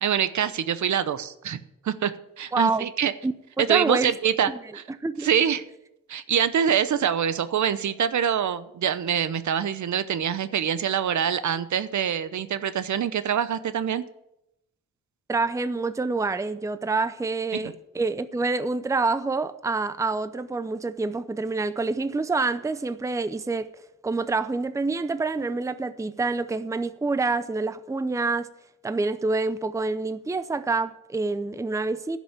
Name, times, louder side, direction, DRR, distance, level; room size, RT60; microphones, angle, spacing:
voice 1, 0.0-1.6 1.8-3.1 3.6-4.8 5.2-5.6 6.1-14.0 17.5-17.7, right 8 dB, 65° right, 0.8 m, -25 dB
voice 2, 2.5-2.9 3.2-4.1 5.0-5.3 15.3-23.7 24.0-28.5 28.8-32.2, right 3 dB, 10° right, 0.6 m, -27 dB
11.0 x 6.2 x 8.9 m
cardioid pair, 85°, 32 cm